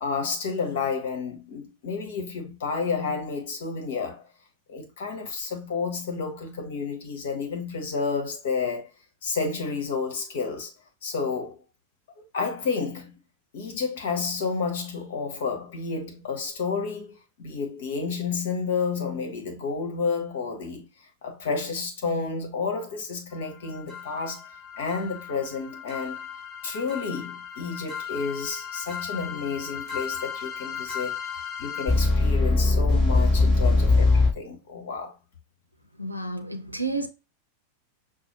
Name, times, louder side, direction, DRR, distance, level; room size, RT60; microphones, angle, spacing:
voice 1, 0.0-4.2 4.7-8.9 9.2-10.7 11.0-11.6 12.3-13.1 13.5-20.8 21.2-24.5 24.8-26.2 26.6-31.2 31.6-35.1, left 5 dB, 55° left, 1.2 m, -30 dB
sound 1, 23.9-34.3, left 3 dB, 30° left, 2.5 m, -25 dB
voice 2, 36.0-37.1, right 2 dB, 85° right, 0.6 m, -30 dB
6.0 x 2.1 x 3.0 m
figure-of-eight pair, 90°, 0 cm